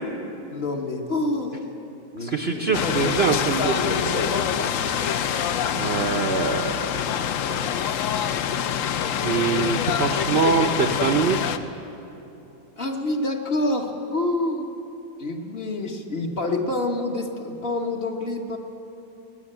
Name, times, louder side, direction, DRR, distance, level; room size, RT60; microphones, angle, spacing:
voice 1, 0.5-1.6 2.1-3.2 3.6-4.5 12.8-14.7 15.2-18.6, left 2 dB, 40° left, 2 dB, 1.1 m, -27 dB
voice 2, 2.2-3.9 5.7-6.9 7.5-7.6 9.2-11.6, right 5 dB, 60° right, 4 dB, 0.7 m, -24 dB
sound 1, 2.7-11.6, left 8 dB, 65° left, 0.8 m, -25 dB
20.0 x 7.1 x 9.8 m, 3.0 s
omnidirectional pair, 1.8 m